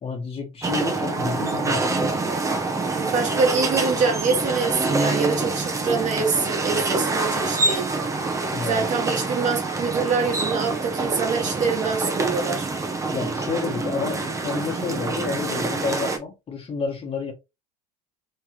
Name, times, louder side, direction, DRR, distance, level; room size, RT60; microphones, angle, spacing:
voice 1, 0.0-2.3 8.5-8.8 13.1-17.3, left 5 dB, 30° left, 1.5 m, -30 dB
sound 1, 0.6-16.2, right 3 dB, 15° right, 0.9 m, -26 dB
voice 2, 2.9-7.9 8.6-12.7, right 5 dB, 40° right, 1.5 m, -25 dB
3.4 x 3.3 x 3.0 m
hypercardioid pair, 80°, 19 cm